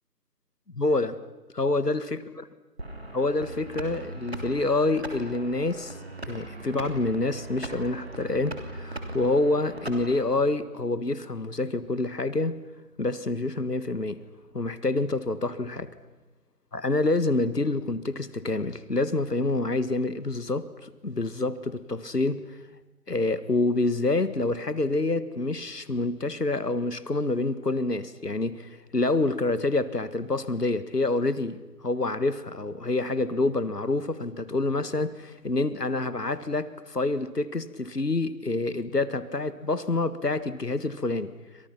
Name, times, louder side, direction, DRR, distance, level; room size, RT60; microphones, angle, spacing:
voice 1, 0.7-1.2 1.5-2.2 3.1-6.0 6.3-12.6 13.0-14.2 14.5-15.9 16.7-22.4 23.1-41.3, left 2 dB, 70° left, 14 dB, 1.8 m, -27 dB
sound 1, 2.8-10.4, right 1 dB, 40° right, 3.0 m, -39 dB
29.5 x 25.5 x 6.0 m, 1.1 s
figure-of-eight pair, 170°, 50 cm